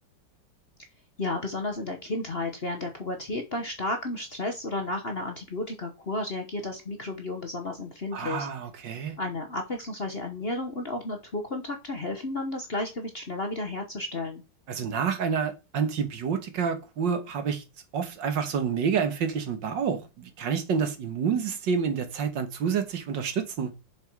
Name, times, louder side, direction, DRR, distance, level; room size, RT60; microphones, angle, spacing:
voice 1, 1.2-8.5 9.2-14.4, left 2 dB, 35° left, 1.1 m, -32 dB
voice 2, 8.1-9.2 14.7-17.6 17.9-23.7, right 6 dB, 65° right, 1.9 m, -28 dB
7.2 x 6.2 x 4.7 m
omnidirectional pair, 2.2 m